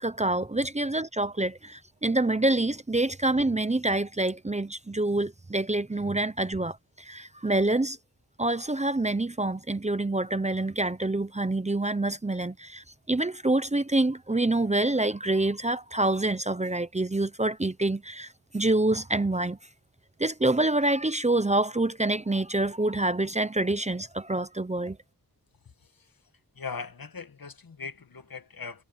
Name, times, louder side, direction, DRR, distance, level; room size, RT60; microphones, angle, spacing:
voice 1, 0.0-8.0 8.4-18.3 18.5-19.6 20.2-25.0, right 2 dB, 20° right, 0.7 m, -26 dB
voice 2, 25.8-26.2 26.5-28.8, left 5 dB, 70° left, 1.7 m, -40 dB
wide cardioid pair, 80°, 36 cm